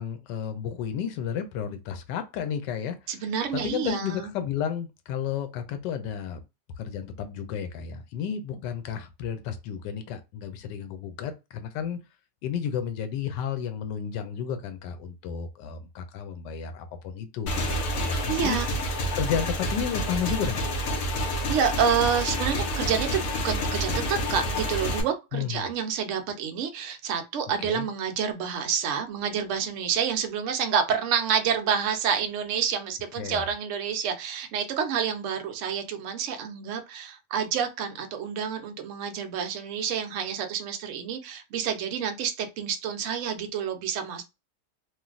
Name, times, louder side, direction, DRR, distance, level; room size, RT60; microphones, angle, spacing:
voice 1, 0.0-3.0 3.5-6.4 6.8-12.0 12.4-18.6 19.1-20.7 25.3-25.7 27.6-27.9 33.2-33.5, left 8 dB, 90° left, 1.2 m, -32 dB
voice 2, 3.1-4.3 18.3-18.7 21.5-44.2, right 7 dB, 70° right, 0.7 m, -28 dB
Motorcycle / Engine, 17.5-25.0, equal, 60° left, 1.0 m, -28 dB
3.1 x 2.6 x 2.4 m
omnidirectional pair, 1.8 m